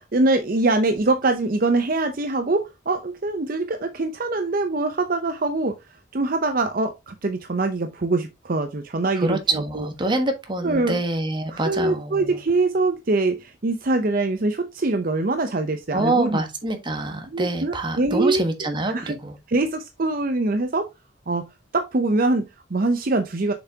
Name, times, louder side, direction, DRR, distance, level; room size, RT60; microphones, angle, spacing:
voice 1, 0.0-5.8 6.1-9.9 10.6-11.0 11.5-16.4 17.3-18.4 18.9-19.2 19.5-20.9 21.3-21.5 21.7-23.5, right 2 dB, 45° right, 0.6 m, -23 dB
voice 2, 9.1-12.4 15.9-19.4, right 2 dB, 25° right, 1.3 m, -26 dB
7.0 x 5.9 x 2.8 m
head